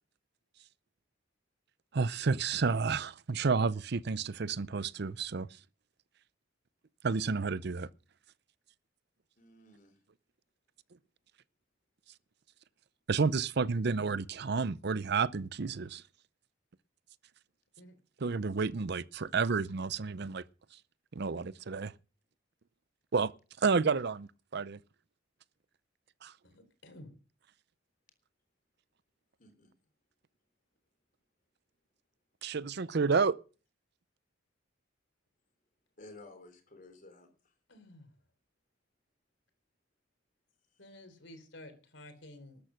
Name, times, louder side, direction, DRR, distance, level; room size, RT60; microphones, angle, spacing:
voice 1, 1.9-5.5 7.0-7.9 13.1-16.0 18.2-20.4 21.1-21.9 23.1-23.3 23.6-24.8 26.2-26.3 32.4-33.4, right 4 dB, 55° right, 0.6 m, -30 dB
voice 2, 9.4-10.0 29.4-29.7 36.0-37.3, left 2 dB, 45° left, 3.7 m, -53 dB
voice 3, 26.4-27.2 37.7-38.1 40.8-42.6, left 1 dB, 65° left, 3.6 m, -52 dB
13.0 x 10.0 x 6.3 m
head